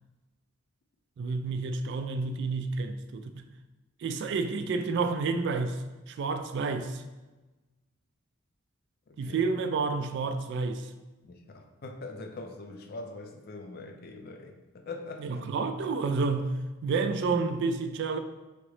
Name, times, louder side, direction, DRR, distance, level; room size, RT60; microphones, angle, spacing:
voice 1, 1.2-3.4 4.0-7.0 9.2-10.9 15.2-18.2, right 4 dB, 60° right, 0.3 m, -30 dB
voice 2, 9.1-9.4 11.2-15.4, left 3 dB, 50° left, 0.4 m, -43 dB
3.9 x 3.5 x 3.2 m
head